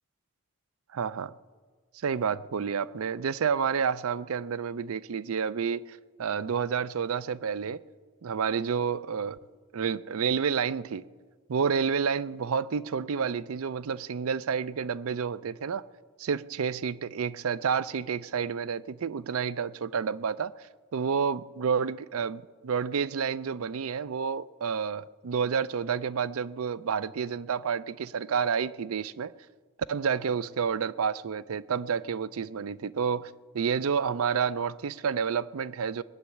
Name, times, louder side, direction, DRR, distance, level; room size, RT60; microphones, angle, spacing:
voice 1, 0.9-1.3 2.0-7.8 8.2-9.4 9.7-11.0 11.5-15.8 16.2-20.5 20.9-29.3 29.9-36.0, right 6 dB, 80° right, 0.4 m, -29 dB
20.5 x 7.1 x 9.2 m
head